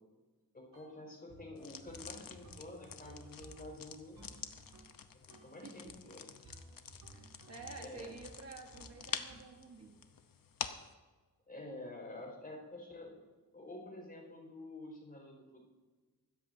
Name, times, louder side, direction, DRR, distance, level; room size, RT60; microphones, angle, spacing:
voice 1, 0.5-4.4 5.1-6.3 7.8-8.1 11.5-13.2 13.5-15.6, left 2 dB, 25° left, -1 dB, 5.2 m, -49 dB
sound 1, 0.7-1.0 1.3-5.0 5.3-6.0 6.4-9.6, right 1 dB, 65° right, 5.6 m, -57 dB
sound 2, 1.6-10.9, left 7 dB, 60° left, 0.9 m, -47 dB
voice 2, 5.6-5.9 7.1-9.9, right 4 dB, 40° right, 1 dB, 1.4 m, -50 dB
25.0 x 13.5 x 2.7 m, 1.3 s
wide cardioid pair, 170°, 38 cm